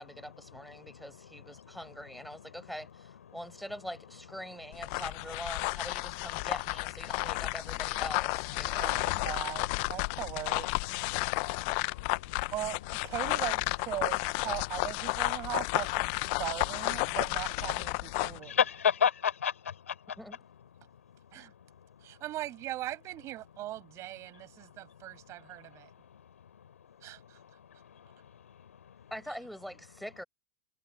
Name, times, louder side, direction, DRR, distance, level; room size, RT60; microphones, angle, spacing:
voice 1, 0.0-8.9 20.2-20.4 29.1-30.2, equal, ahead, 6.0 m, -43 dB
sound 1, 4.7-18.4, left 27 dB, 55° left, 0.9 m, -32 dB
voice 2, 7.0-7.4 8.6-9.0 10.0-10.1 11.1-12.5 18.2-20.2 21.4-21.5 25.8-26.5 26.9-27.1 27.6-29.1, left 8 dB, 85° left, 4.5 m, -34 dB
voice 3, 8.7-10.7 12.5-18.5 21.3-21.5 22.0-25.9 27.0-27.4, right 15 dB, 40° right, 7.8 m, -39 dB
hypercardioid pair, 100°, 7 cm